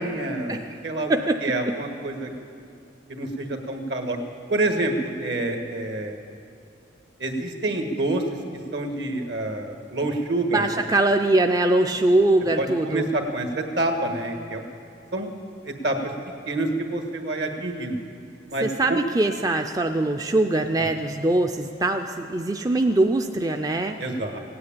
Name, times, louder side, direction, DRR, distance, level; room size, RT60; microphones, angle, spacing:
voice 1, 0.0-1.1 1.4-2.3 3.1-4.2 4.5-6.2 7.2-8.2 8.7-10.7 12.6-14.6 15.1-15.3 15.6-16.0 16.5-18.0 18.5-19.0 24.0-24.4, right 2 dB, 70° right, 4 dB, 1.6 m, -27 dB
voice 2, 1.1-1.7 10.5-13.1 18.6-24.0, right 2 dB, 20° right, 5 dB, 0.4 m, -22 dB
17.0 x 9.6 x 8.8 m, 2.6 s
head